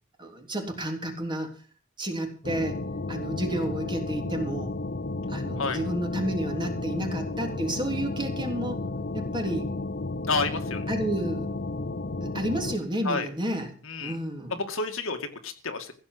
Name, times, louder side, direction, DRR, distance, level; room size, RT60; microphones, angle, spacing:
voice 1, 0.2-1.5 2.0-2.8 3.1-4.7 5.3-8.9 9.1-9.7 10.9-11.5 12.2-13.8 14.0-14.6, right 1 dB, 20° right, 3 dB, 3.3 m, -31 dB
sound 1, 2.4-12.8, left 2 dB, 45° left, 0.9 m, -32 dB
voice 2, 10.3-10.9 13.0-13.3 13.9-14.2 14.5-15.9, left 3 dB, 65° left, 5 dB, 2.2 m, -30 dB
15.5 x 7.8 x 7.9 m, 0.40 s
head